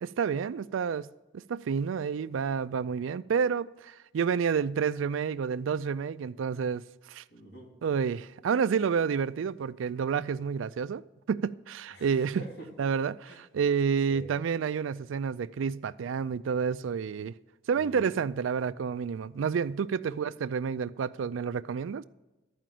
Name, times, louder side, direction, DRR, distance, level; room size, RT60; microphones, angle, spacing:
voice 1, 0.0-1.1 1.3-7.2 7.8-11.0 11.3-12.4 12.8-17.3 17.7-22.0, right 6 dB, 90° right, 0.4 m, -29 dB
voice 2, 7.3-7.7 11.9-12.7 13.2-13.4 14.1-14.3 17.7-18.2 20.1-20.2, right 1 dB, 60° left, 2.7 m, -46 dB
12.5 x 5.0 x 7.6 m
head